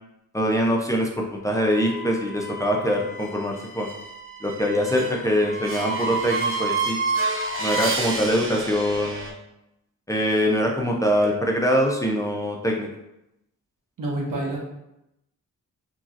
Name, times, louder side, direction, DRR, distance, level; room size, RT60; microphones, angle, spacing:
voice 1, 0.3-3.9 4.4-7.0 7.6-9.3 10.1-12.9, equal, 10° left, -1 dB, 0.4 m, -23 dB
sound 1, 1.6-9.3, right 3 dB, 45° right, 0.6 m, -30 dB
voice 2, 14.0-14.6, right 1 dB, 90° right, -1 dB, 0.8 m, -27 dB
3.0 x 2.6 x 2.4 m, 0.87 s
wide cardioid pair, 95°, 31 cm